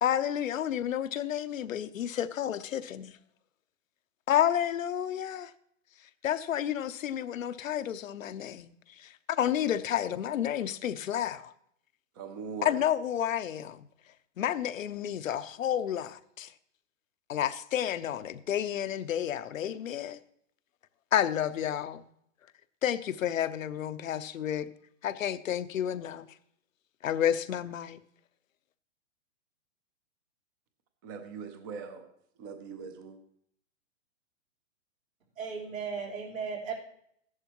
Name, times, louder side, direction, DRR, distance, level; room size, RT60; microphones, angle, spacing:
voice 1, 0.0-3.2 4.3-5.5 6.2-11.5 12.6-13.9 14.4-16.5 17.3-20.2 21.1-22.0 22.8-24.7 25.0-26.3 27.0-28.0, left 10 dB, 85° left, 0.8 m, -30 dB
voice 2, 12.1-12.8 31.0-32.0 32.4-33.2, right 6 dB, 15° right, 0.5 m, -41 dB
voice 3, 35.4-36.7, right 5 dB, 90° right, 4.1 m, -36 dB
14.5 x 11.0 x 3.0 m
hypercardioid pair, 155°, 39 cm